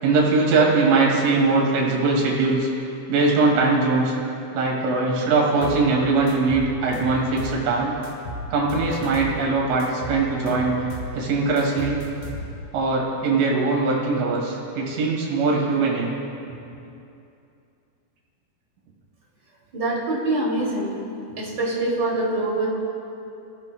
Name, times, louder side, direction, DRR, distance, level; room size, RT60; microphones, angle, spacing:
voice 1, 0.0-2.7 3.1-4.1 4.5-7.9 8.5-10.8 11.1-12.0 12.7-16.1, right 3 dB, 75° right, -2 dB, 4.9 m, -21 dB
sound 1, 5.6-5.9 6.3-7.6 8.0-9.4 9.8-11.2 11.6-12.7, left 1 dB, 65° left, 4.2 m, -34 dB
voice 2, 19.7-21.0 21.4-22.7, right 2 dB, 30° right, -4 dB, 2.4 m, -24 dB
26.0 x 16.0 x 2.3 m, 2.7 s
omnidirectional pair, 5.6 m